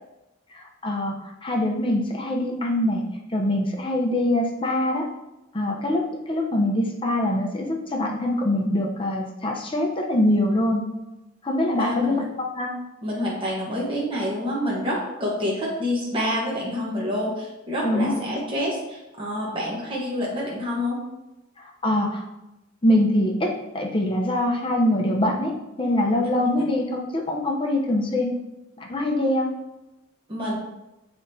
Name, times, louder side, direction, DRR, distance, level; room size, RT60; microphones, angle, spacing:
voice 1, 0.5-3.0 3.3-5.1 5.5-10.8 11.4-12.2 12.5-12.7 17.8-18.1 21.6-22.2 22.8-28.3 28.8-29.5, left 1 dB, 25° left, 1 dB, 0.8 m, -24 dB
voice 2, 11.8-12.2 13.0-21.0 30.3-30.6, left 1 dB, 25° right, -5 dB, 1.2 m, -27 dB
7.4 x 4.9 x 2.8 m, 0.95 s
head